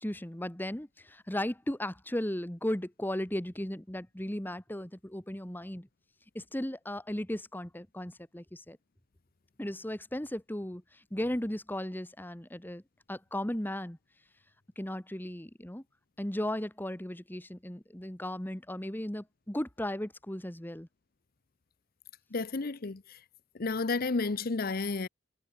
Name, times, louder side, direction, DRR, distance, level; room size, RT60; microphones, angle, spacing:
voice 1, 0.0-5.9 6.3-8.8 9.6-12.8 13.1-14.0 14.8-15.8 16.2-20.9, left 1 dB, 10° left, 1.2 m, -36 dB
voice 2, 22.3-23.2 23.6-25.1, left 3 dB, 45° left, 0.7 m, -31 dB
head